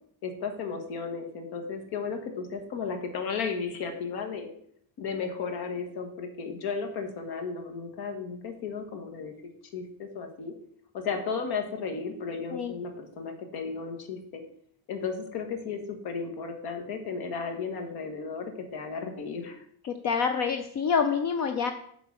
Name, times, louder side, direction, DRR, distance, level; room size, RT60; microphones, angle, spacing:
voice 1, 0.2-4.5 5.0-9.3 9.7-10.5 10.9-14.4 14.9-19.6, left 5 dB, 70° left, 5 dB, 1.6 m, -34 dB
voice 2, 19.8-21.7, left 6 dB, 45° left, 7 dB, 0.5 m, -27 dB
8.0 x 4.0 x 6.2 m, 0.66 s
cardioid pair, 160°, 39 cm